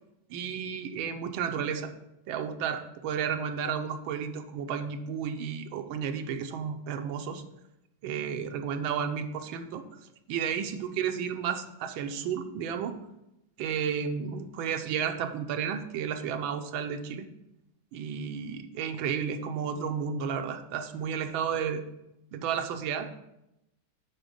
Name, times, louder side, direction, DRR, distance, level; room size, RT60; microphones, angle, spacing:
voice 1, 0.3-1.9 2.3-7.4 8.0-9.8 10.3-12.9 13.6-17.3 17.9-21.8 22.3-23.1, right 7 dB, 85° right, 7 dB, 1.5 m, -32 dB
8.9 x 4.1 x 5.1 m, 0.88 s
omnidirectional pair, 2.2 m